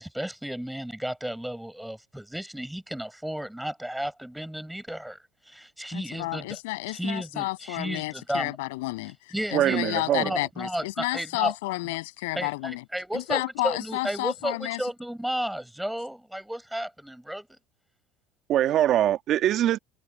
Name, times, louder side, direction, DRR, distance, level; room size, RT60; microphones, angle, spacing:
voice 1, 0.0-6.6 6.9-8.6 9.3-9.8 10.2-11.5 11.8-12.0 12.4-17.6, right 1 dB, 5° right, 7.5 m, -33 dB
voice 2, 5.9-12.8 13.1-14.8, left 22 dB, 80° left, 8.0 m, -31 dB
voice 3, 9.5-10.4 18.5-19.8, right 12 dB, 50° right, 1.7 m, -23 dB
supercardioid pair, 100°, 0 cm